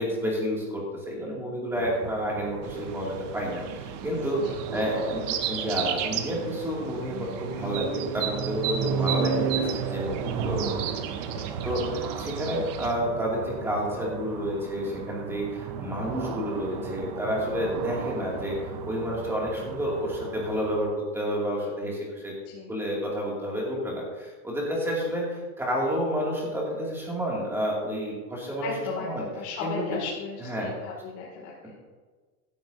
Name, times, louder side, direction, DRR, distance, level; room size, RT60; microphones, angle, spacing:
voice 1, 0.0-4.4 4.7-10.6 11.6-22.3 22.7-28.7 29.0-29.2 29.6-29.9 30.4-30.7 31.6-31.8, equal, 5° right, -4 dB, 2.3 m, -30 dB
sound 1, 1.7-20.8, right 7 dB, 30° right, 0.4 m, -35 dB
sound 2, 2.6-12.9, right 9 dB, 50° right, 1.0 m, -36 dB
voice 2, 17.5-17.8 22.5-22.7 28.6-31.7, left 5 dB, 65° left, -4 dB, 2.5 m, -36 dB
15.5 x 10.5 x 2.7 m, 1.4 s
supercardioid pair, 175°, 48 cm